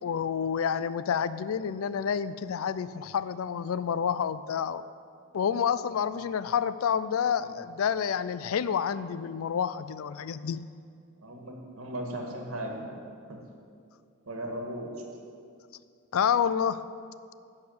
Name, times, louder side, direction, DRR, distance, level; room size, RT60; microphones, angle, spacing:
voice 1, 0.0-4.8 5.3-10.7 16.1-16.9, left 7 dB, 80° left, 15 dB, 0.4 m, -29 dB
voice 2, 11.2-13.0 13.3-13.4 14.3-14.9, right 1 dB, 80° right, 0 dB, 1.6 m, -37 dB
10.5 x 4.9 x 7.8 m, 2.3 s
head